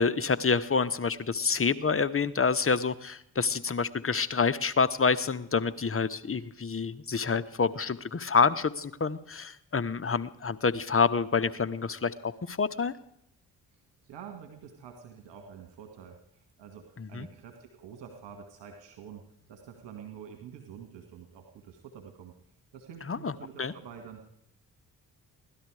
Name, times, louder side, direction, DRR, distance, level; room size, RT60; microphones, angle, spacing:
voice 1, 0.0-12.9 17.0-17.3 23.0-23.7, left 5 dB, 30° left, 12 dB, 1.1 m, -27 dB
voice 2, 13.7-19.2 19.5-22.3 22.7-24.2, right 7 dB, 70° right, 4 dB, 2.0 m, -47 dB
17.5 x 12.5 x 4.9 m, 0.73 s
hypercardioid pair, 40°, 44 cm